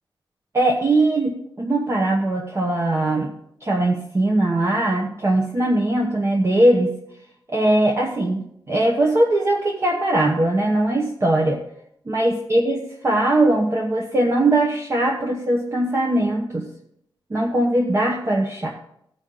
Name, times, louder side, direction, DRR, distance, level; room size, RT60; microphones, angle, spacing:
voice 1, 0.5-3.3 3.6-6.9 7.5-11.6 12.1-16.7 17.3-18.7, right 1 dB, 30° right, -1 dB, 0.9 m, -20 dB
14.5 x 5.3 x 3.7 m, 0.75 s
wide cardioid pair, 160°, 9 cm